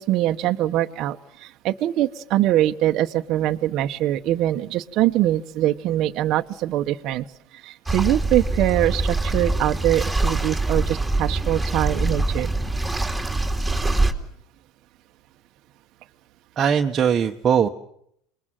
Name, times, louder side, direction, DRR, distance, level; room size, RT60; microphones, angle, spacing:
voice 1, 0.0-7.2 7.5-12.5, right 14 dB, 50° right, 5 dB, 1.0 m, -23 dB
sound 1, 7.9-14.1, right 2 dB, 5° right, 2.8 m, -24 dB
voice 2, 16.6-17.7, right 8 dB, 30° right, 3 dB, 1.2 m, -20 dB
27.0 x 21.5 x 7.6 m, 0.72 s
supercardioid pair, 125°, 0 cm